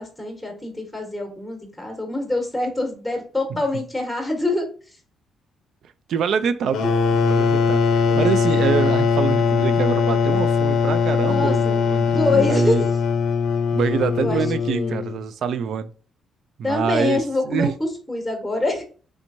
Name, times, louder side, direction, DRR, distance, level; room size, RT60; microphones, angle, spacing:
voice 1, 0.0-4.7 8.0-8.3 11.2-11.8 12.1-12.9 14.2-15.0 16.6-18.8, left 2 dB, ahead, 1.1 m, -25 dB
voice 2, 6.1-12.9 13.7-15.9 16.6-17.7, right 7 dB, 70° right, 0.3 m, -25 dB
sound 1, 6.7-15.2, left 6 dB, 75° left, 0.5 m, -20 dB
3.3 x 3.0 x 2.6 m
cardioid pair, 90°, 0 cm